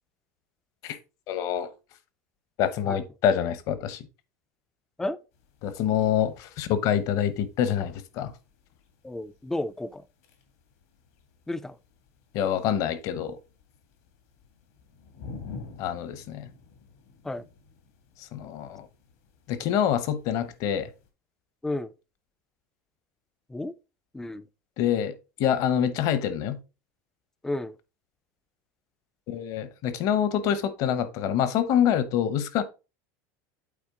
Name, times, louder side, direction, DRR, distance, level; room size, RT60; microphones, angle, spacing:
voice 1, 1.3-1.7 2.6-4.1 5.6-8.3 12.3-13.4 15.8-16.5 18.2-18.9 19.5-20.9 24.8-26.6 29.3-32.6, left 9 dB, 50° left, 0.9 m, -26 dB
sound 1, 5.3-21.1, left 4 dB, 75° left, 2.0 m, -50 dB
voice 2, 9.0-10.1 11.5-11.8 17.2-17.4 21.6-21.9 23.5-23.7 24.1-24.5 27.4-27.8, left 2 dB, 5° left, 0.4 m, -32 dB
8.6 x 4.1 x 3.6 m
supercardioid pair, 150°, 8 cm